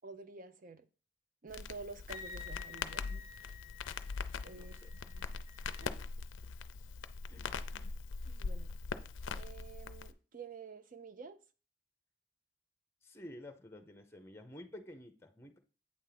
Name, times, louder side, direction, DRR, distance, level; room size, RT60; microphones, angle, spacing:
voice 1, 0.0-0.9 1.4-3.6 4.4-4.8 5.0-5.3 5.8-6.0 8.3-8.7 9.3-11.4, right 4 dB, 45° right, 0.6 m, -50 dB
Crackle, 1.5-10.1, left 4 dB, 85° left, 0.5 m, -42 dB
Wind instrument woodwind instrument, 2.1-5.9, left 6 dB, 20° right, 1.9 m, -52 dB
voice 2, 4.5-4.9 6.4-6.5 7.3-7.9 13.0-15.6, left 1 dB, 15° left, 0.7 m, -52 dB
8.5 x 3.5 x 5.7 m
head